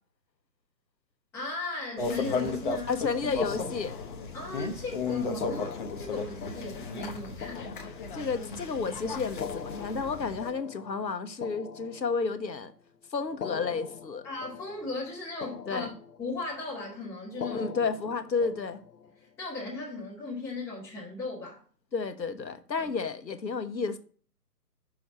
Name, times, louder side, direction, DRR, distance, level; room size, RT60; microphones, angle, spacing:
voice 1, 1.3-3.1 4.3-7.7 14.2-15.9 16.2-17.7 19.2-21.6 22.8-22.9, left 3 dB, 5° left, 0.7 m, -37 dB
sound 1, 2.0-10.5, left 4 dB, 30° left, 0.8 m, -35 dB
voice 2, 2.9-3.9 8.1-12.7 13.1-14.3 15.7-15.9 17.5-18.8 21.9-24.0, left 4 dB, 85° left, 1.2 m, -31 dB
sound 2, 3.4-4.7 5.3-8.6 9.3-12.6 13.3-15.1 15.4-16.5 17.3-19.1, left 6 dB, 70° left, 0.9 m, -42 dB
6.2 x 4.7 x 6.2 m
figure-of-eight pair, 145°, 49 cm